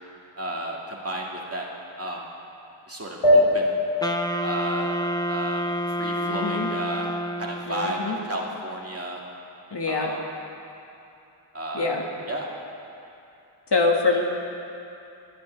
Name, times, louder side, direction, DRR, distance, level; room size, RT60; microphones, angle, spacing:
voice 1, 0.4-1.7 2.0-2.2 2.9-3.8 4.4-5.0 5.3-5.7 6.0-7.1 7.4-9.2 9.8-10.2 11.5-12.5, right 1 dB, 30° right, -2 dB, 2.2 m, -33 dB
sound 1, 3.2-6.2, left 1 dB, 80° left, 1.9 m, -23 dB
Wind instrument woodwind instrument, 4.0-7.9, equal, 10° left, 0.7 m, -28 dB
voice 2, 6.1-6.7 7.7-8.1 9.7-10.1 11.7-12.1 13.7-14.2, left 3 dB, 55° left, 0 dB, 1.8 m, -24 dB
26.5 x 9.8 x 3.4 m, 2.7 s
cardioid pair, 65°, 50 cm